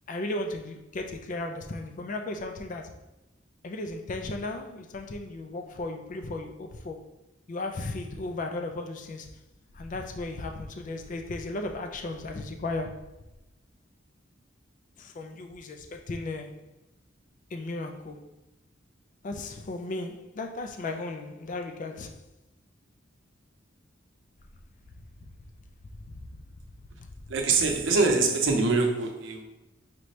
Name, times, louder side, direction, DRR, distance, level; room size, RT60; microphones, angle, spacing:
voice 1, 0.1-2.9 3.6-7.0 7.5-9.3 9.7-13.2 15.0-16.6 17.5-18.3 19.2-22.2 25.2-25.3 26.1-26.3 27.0-27.1, left 2 dB, 40° left, 0.4 m, -35 dB
voice 2, 27.3-29.4, right 3 dB, 70° right, 0.6 m, -24 dB
4.4 x 2.6 x 3.1 m
head